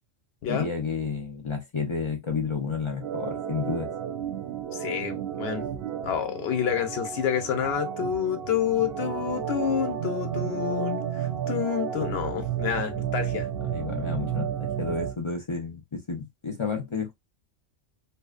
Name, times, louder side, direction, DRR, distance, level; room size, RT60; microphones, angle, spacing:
voice 1, 0.5-3.9 13.6-17.1, left 5 dB, 35° left, 0.5 m, -31 dB
Organ, 3.0-15.1, right 9 dB, 65° right, 0.7 m, -32 dB
voice 2, 4.7-5.6 6.0-13.5, left 9 dB, 65° left, 0.8 m, -28 dB
2.6 x 2.1 x 2.3 m
omnidirectional pair, 1.2 m